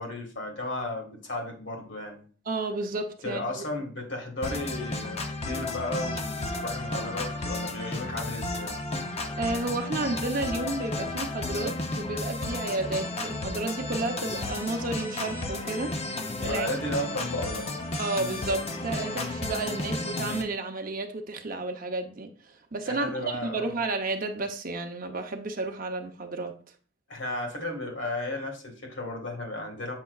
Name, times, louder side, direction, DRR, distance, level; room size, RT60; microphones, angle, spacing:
voice 1, 0.0-2.3 3.2-8.7 16.4-17.7 22.8-23.7 27.1-29.9, left 1 dB, 65° left, 1 dB, 1.8 m, -34 dB
voice 2, 2.5-3.6 9.4-15.9 16.2-16.7 18.0-22.3 22.7-26.5, right 2 dB, 45° right, 5 dB, 0.7 m, -32 dB
sound 1, 4.4-20.4, left 2 dB, 30° left, 0.7 m, -33 dB
7.2 x 5.5 x 2.4 m, 0.41 s
head